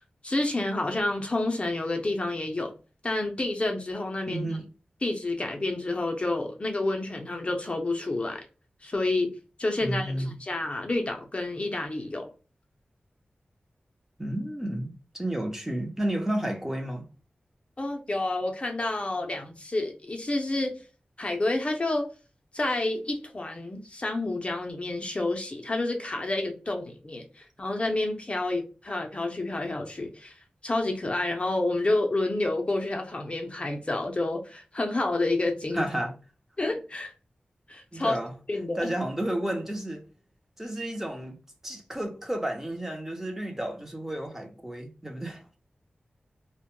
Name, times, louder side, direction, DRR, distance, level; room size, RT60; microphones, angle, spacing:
voice 1, 0.2-2.7 3.0-4.5 5.0-8.4 8.8-9.3 9.6-12.3 17.8-20.7 21.2-22.1 22.5-30.3 30.6-35.8 36.6-37.1 37.7-38.2 38.5-38.9, left 2 dB, 35° left, 0.5 m, -29 dB
voice 2, 4.3-4.6 9.8-10.4 14.2-17.1 35.7-36.1 37.9-38.3 38.8-40.1 40.6-41.4 41.6-45.6, right 1 dB, 10° right, 0.6 m, -32 dB
2.1 x 2.0 x 2.9 m
wide cardioid pair, 70°, 3 cm